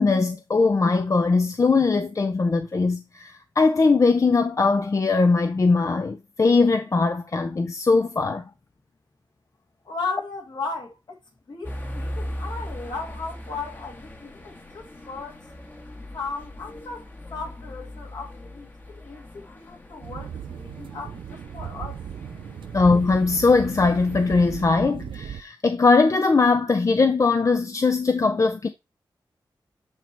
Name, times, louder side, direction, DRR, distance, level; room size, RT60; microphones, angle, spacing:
voice 1, 0.0-8.4 22.7-28.7, left 4 dB, 40° left, 0.6 m, -20 dB
voice 2, 9.9-11.2 11.5-15.4 16.1-22.0, left 4 dB, 65° left, 2.2 m, -36 dB
sound 1, 11.6-24.6, left 1 dB, 25° left, 1.2 m, -40 dB
sound 2, 20.0-25.4, right 8 dB, 80° right, 0.5 m, -37 dB
8.7 x 3.1 x 4.5 m
wide cardioid pair, 85°, 8 cm